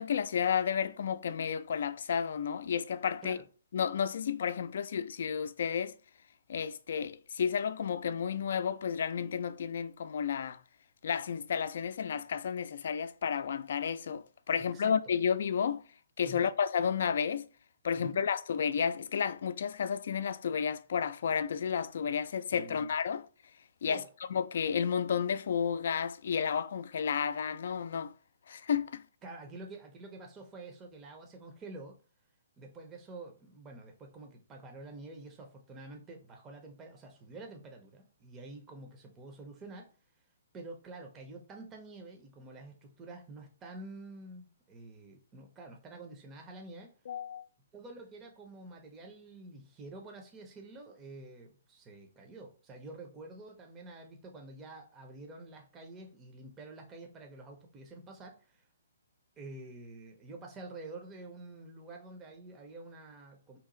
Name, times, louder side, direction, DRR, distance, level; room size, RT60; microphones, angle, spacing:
voice 1, 0.0-3.4 3.7-5.9 6.5-10.6 11.0-15.8 16.2-17.5 17.8-23.3 23.8-24.0 24.3-28.1 28.5-29.0 47.1-47.4, left 7 dB, 65° left, 0.3 m, -32 dB
voice 2, 14.6-14.9 16.2-16.5 17.9-18.2 22.5-22.9 23.9-24.1 29.2-32.0 32.6-39.9 40.5-46.9 47.7-58.7 59.4-63.6, right 2 dB, 20° right, 0.6 m, -48 dB
2.8 x 2.3 x 3.8 m
hypercardioid pair, 140°, 0 cm